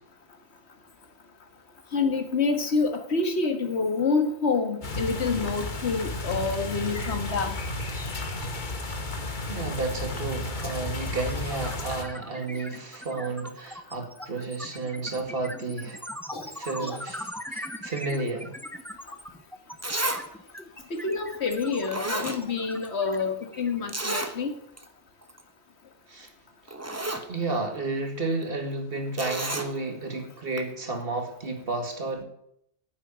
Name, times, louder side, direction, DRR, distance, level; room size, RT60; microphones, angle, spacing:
voice 1, 1.9-7.5 16.3-16.5 16.8-17.0 21.0-24.5, left 4 dB, 65° left, 7 dB, 1.8 m, -27 dB
sound 1, 4.8-12.0, left 2 dB, 40° left, 1.4 m, -33 dB
voice 2, 9.3-16.1 16.5-18.6 26.1-26.3 26.7-32.2, right 3 dB, 50° right, 3 dB, 2.4 m, -32 dB
sound 2, 9.5-9.7 10.0-24.3, equal, ahead, 0.7 m, -41 dB
Zipper (clothing), 19.3-19.4 19.8-20.2 20.6-20.7 21.5-21.6 21.9-22.9 23.1-23.2 23.9-24.3 24.8-24.9 25.2-25.4 26.3-26.4 26.7-27.3 29.2-29.7 30.6-30.7, right 2 dB, 15° right, 1.0 m, -31 dB
9.2 x 8.8 x 9.2 m, 0.73 s
omnidirectional pair, 1.2 m